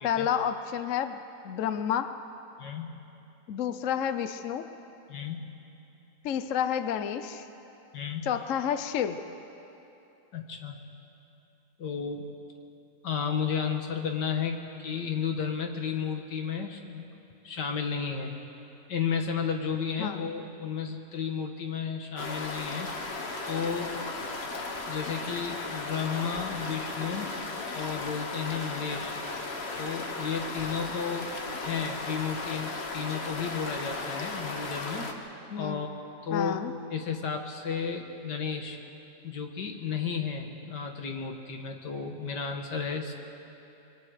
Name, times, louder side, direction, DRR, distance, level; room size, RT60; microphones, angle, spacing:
voice 1, 0.0-1.2 1.4-2.2 3.5-4.7 6.2-7.5 8.2-9.2 20.0-20.3 35.5-35.8 36.3-36.7, left 9 dB, 60° left, 10 dB, 0.9 m, -30 dB
voice 2, 2.6-3.1 5.1-5.6 7.9-8.3 10.3-10.8 11.8-12.3 13.0-17.1 17.4-18.3 18.9-23.0 23.4-24.0 24.9-27.4 27.7-29.2 29.8-35.1 35.6-35.9 36.2-36.6 36.9-38.8 39.2-43.1, left 6 dB, 75° left, 3 dB, 2.1 m, -33 dB
sound 1, 22.2-35.1, left 3 dB, 40° left, 1.5 m, -36 dB
25.5 x 22.5 x 4.9 m, 2.9 s
omnidirectional pair, 1.8 m